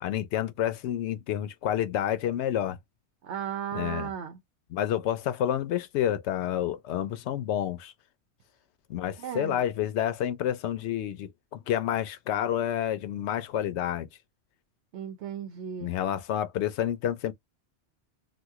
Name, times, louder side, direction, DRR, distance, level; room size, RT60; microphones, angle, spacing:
voice 1, 0.0-2.8 3.7-4.1 4.7-7.9 8.9-14.1 15.8-17.3, left 11 dB, 80° left, 0.9 m, -29 dB
voice 2, 3.2-4.4 9.2-9.6 14.9-15.9, right 8 dB, 80° right, 0.9 m, -35 dB
3.0 x 2.3 x 3.4 m
omnidirectional pair, 1.1 m